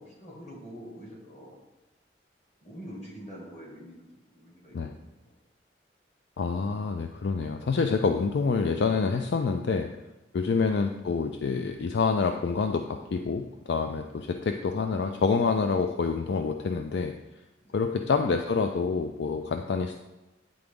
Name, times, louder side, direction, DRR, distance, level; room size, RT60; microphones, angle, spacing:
voice 1, 0.0-1.6 2.6-5.4 14.1-14.4 17.6-18.0, equal, 40° left, -4 dB, 2.0 m, -46 dB
voice 2, 6.4-9.9 10.3-17.1 17.7-20.0, left 4 dB, 65° left, 5 dB, 0.4 m, -27 dB
9.4 x 3.9 x 3.5 m, 1.0 s
head